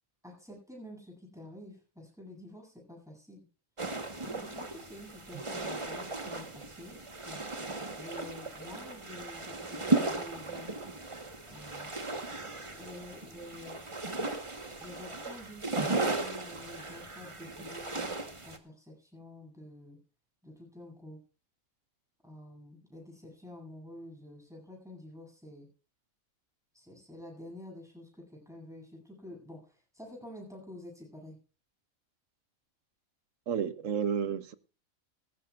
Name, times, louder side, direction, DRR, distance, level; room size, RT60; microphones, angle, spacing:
voice 1, 0.2-3.4 4.2-7.4 7.9-10.8 11.5-11.9 12.3-13.8 14.8-18.0 18.4-20.0 20.4-21.2 22.2-25.7 26.7-31.4, left 1 dB, ahead, 8.0 m, -49 dB
sound 1, 3.8-18.6, right 3 dB, 25° right, 1.3 m, -36 dB
voice 2, 33.5-34.5, right 7 dB, 65° right, 1.3 m, -31 dB
18.5 x 14.5 x 2.5 m
omnidirectional pair, 1.4 m